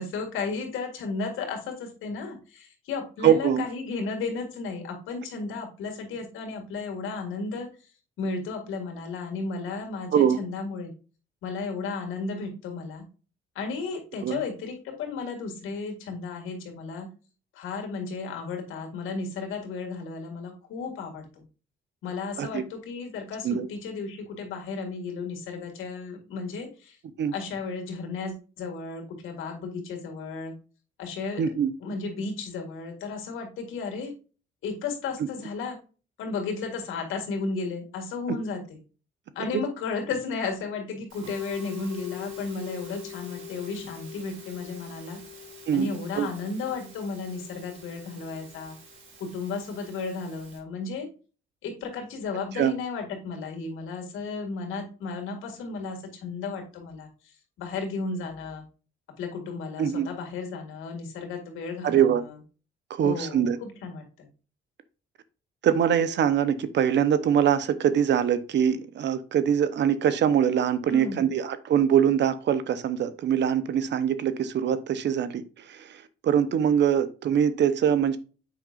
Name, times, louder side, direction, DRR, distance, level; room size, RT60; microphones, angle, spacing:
voice 1, 0.0-7.7 8.2-10.9 11.4-13.0 13.6-17.1 17.5-21.4 22.0-27.0 27.3-30.5 31.0-31.5 31.8-34.1 34.6-35.8 36.2-38.8 39.4-45.2 45.7-48.8 49.2-51.1 51.6-57.1 57.6-58.6 59.2-62.2 63.0-64.3 70.9-71.2, left 4 dB, 85° left, 1.9 m, -34 dB
voice 2, 3.2-3.7 10.1-10.4 14.2-14.4 22.4-22.6 23.4-23.7 27.2-27.3 31.4-31.7 38.3-38.4 39.5-39.6 45.7-45.9 46.2-46.3 52.6-52.7 59.8-60.1 61.8-62.2 62.9-63.6 65.6-75.4 75.7-78.2, right 8 dB, 65° right, 0.8 m, -23 dB
Musical instrument, 41.1-50.6, left 6 dB, 80° right, 2.6 m, -43 dB
7.7 x 5.3 x 2.4 m
cardioid pair, 90°, 20 cm